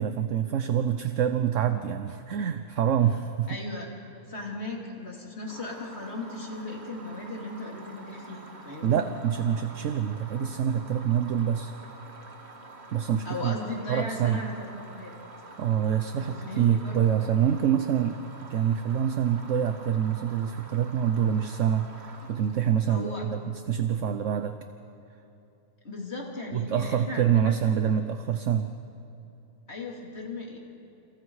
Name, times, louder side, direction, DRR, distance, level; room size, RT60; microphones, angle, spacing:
voice 1, 0.0-3.6 8.8-11.7 12.9-13.6 13.9-14.4 15.6-18.2 18.5-24.6 26.5-28.7, right 9 dB, 65° right, 9 dB, 1.1 m, -26 dB
voice 2, 3.5-3.9 4.3-9.0 13.3-15.1 16.2-17.2 22.9-23.3 25.8-27.5 29.7-30.6, left 2 dB, 50° left, -1 dB, 3.5 m, -37 dB
sound 1, 5.5-23.4, right 2 dB, 50° right, 1.9 m, -47 dB
29.0 x 28.5 x 4.9 m, 2.8 s
omnidirectional pair, 1.4 m